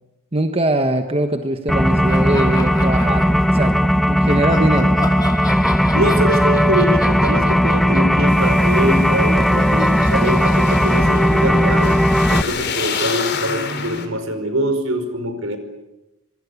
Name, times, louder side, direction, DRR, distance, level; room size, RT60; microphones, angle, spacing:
voice 1, 0.3-5.1 13.3-14.1, right 1 dB, 25° right, 6 dB, 1.4 m, -22 dB
sound 1, 1.7-12.4, equal, ahead, 0.9 m, -16 dB
sound 2, 2.1-3.7 4.2-12.5, left 2 dB, 20° left, 2.2 m, -34 dB
voice 2, 5.9-12.0 12.3-15.6, equal, 70° right, 9 dB, 5.0 m, -23 dB
sound 3, 8.3-14.1, left 5 dB, 55° left, 3.8 m, -29 dB
26.0 x 24.5 x 8.5 m, 1.0 s
head